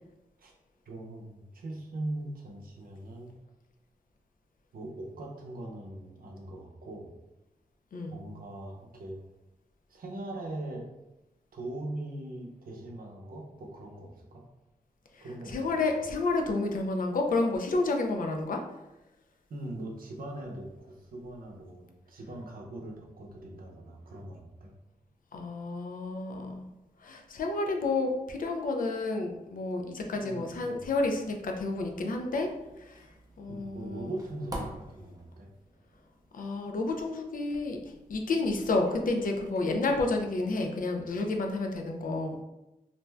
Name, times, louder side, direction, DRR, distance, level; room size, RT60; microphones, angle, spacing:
voice 1, 0.9-3.3 4.7-7.1 8.1-9.2 9.9-10.8 11.5-14.4 15.2-15.8 19.5-24.7 30.1-30.8 33.5-35.5, right 1 dB, 80° right, 0 dB, 0.6 m, -41 dB
voice 2, 15.1-18.6 25.3-26.6 27.0-32.5 32.8-33.0 33.4-34.1 36.3-37.8 38.1-42.4, left 3 dB, 70° left, 3 dB, 0.4 m, -30 dB
sound 1, 30.8-40.1, right 1 dB, 25° right, 0.5 m, -49 dB
2.5 x 2.2 x 3.2 m, 0.96 s
wide cardioid pair, 130°, 15 cm